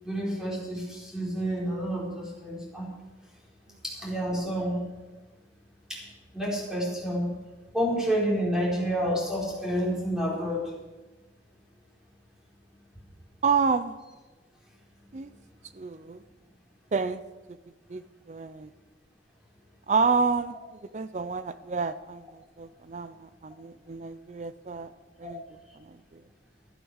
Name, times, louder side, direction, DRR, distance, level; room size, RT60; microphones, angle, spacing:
voice 1, 0.0-2.9 3.8-4.8 5.9-7.3 7.7-10.7 25.2-25.3, equal, 5° right, -5 dB, 4.7 m, -29 dB
voice 2, 13.4-13.9 15.1-15.3 15.8-16.2 16.9-17.2 17.9-18.7 19.9-20.5 20.9-24.9 25.2-25.4 25.8-26.2, right 5 dB, 40° right, 13 dB, 0.4 m, -29 dB
13.5 x 11.0 x 6.4 m, 1.2 s
head